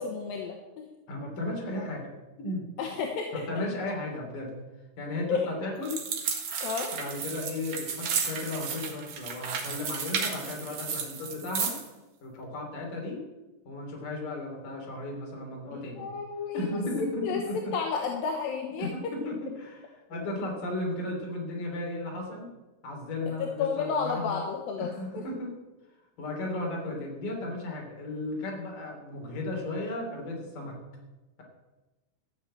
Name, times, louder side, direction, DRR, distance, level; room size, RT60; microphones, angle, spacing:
voice 1, 0.0-0.9 2.8-3.4 5.3-5.5 6.6-6.9 15.7-19.1 23.4-25.3, left 5 dB, 70° left, 2 dB, 2.7 m, -32 dB
voice 2, 1.1-2.1 2.4-2.7 3.3-4.5 5.0-6.0 6.9-11.8 12.2-13.2 13.6-16.1 16.5-17.7 18.8-22.5 22.8-24.4 24.8-25.5 26.2-30.8, left 2 dB, 55° left, 0 dB, 4.6 m, -35 dB
sound 1, 5.8-11.9, right 6 dB, 55° right, 2.7 m, -33 dB
14.0 x 6.8 x 8.6 m, 1.1 s
omnidirectional pair, 4.7 m